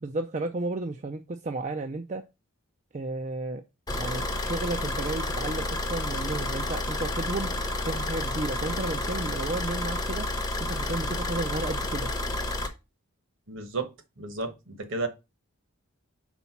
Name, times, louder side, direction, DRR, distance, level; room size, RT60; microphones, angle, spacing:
voice 1, 0.0-2.3 2.9-3.6 3.9-7.5 7.8-10.3 10.6-12.1, right 2 dB, 35° right, 0.4 m, -33 dB
Car / Idling, 3.9-12.7, left 2 dB, 15° left, 0.8 m, -30 dB
voice 2, 13.5-13.9 14.2-15.1, right 3 dB, 55° right, 1.1 m, -32 dB
4.9 x 4.2 x 5.7 m
head